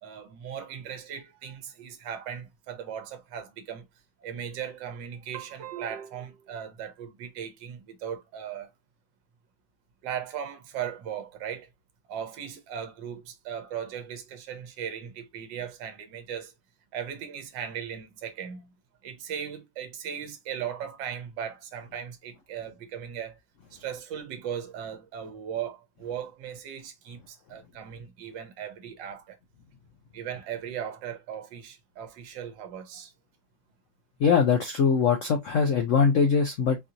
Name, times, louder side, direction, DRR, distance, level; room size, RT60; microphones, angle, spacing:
voice 1, 0.0-3.8 4.2-8.7 10.0-11.7 12.1-16.5 16.9-18.7 19.0-23.4 23.7-29.4 30.1-33.1, right 8 dB, 70° right, 1.5 m, -37 dB
voice 2, 34.2-36.8, left 6 dB, 85° left, 0.6 m, -22 dB
4.6 x 2.8 x 2.4 m
omnidirectional pair, 2.1 m